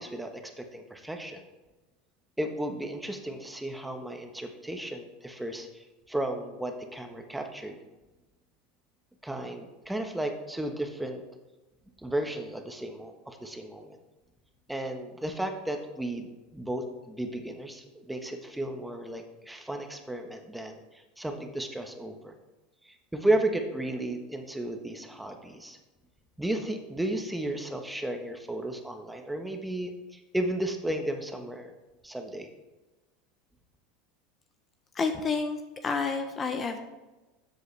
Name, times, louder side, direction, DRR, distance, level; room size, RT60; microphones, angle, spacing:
voice 1, 0.0-1.4 2.4-7.8 9.2-11.2 12.0-14.0 14.7-22.4 22.8-25.8 26.4-31.7 32.0-32.5, right 1 dB, 5° right, 4 dB, 1.3 m, -34 dB
voice 2, 34.9-36.8, left 4 dB, 30° left, 7 dB, 0.9 m, -29 dB
12.5 x 7.8 x 3.4 m, 1.1 s
hypercardioid pair, 100°, 0 cm